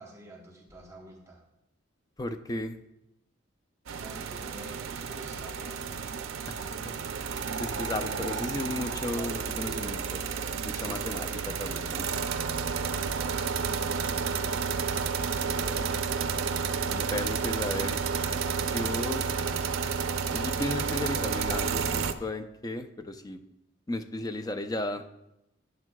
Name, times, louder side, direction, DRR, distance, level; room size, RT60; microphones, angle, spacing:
voice 1, 0.0-1.4 4.0-5.9 7.7-8.5 9.1-10.1 10.7-11.5, right 1 dB, 15° right, 1 dB, 0.8 m, -48 dB
voice 2, 2.2-2.8 6.5-7.0 7.6-10.2 10.6-12.2 15.7-15.8 16.9-18.0 18.7-19.3 20.3-23.4 23.9-25.0, left 1 dB, 20° left, 7 dB, 0.4 m, -34 dB
sound 1, 3.9-22.1, right 6 dB, 80° right, 0.5 m, -31 dB
10.5 x 9.4 x 2.3 m, 0.87 s
head